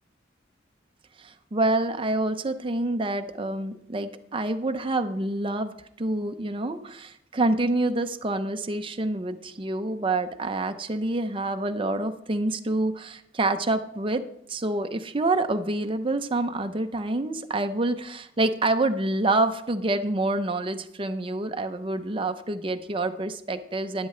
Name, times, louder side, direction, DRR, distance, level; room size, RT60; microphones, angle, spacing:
voice 1, 1.2-14.2 14.5-24.1, right 2 dB, 30° right, 8 dB, 0.6 m, -27 dB
11.5 x 10.5 x 3.3 m, 0.74 s
head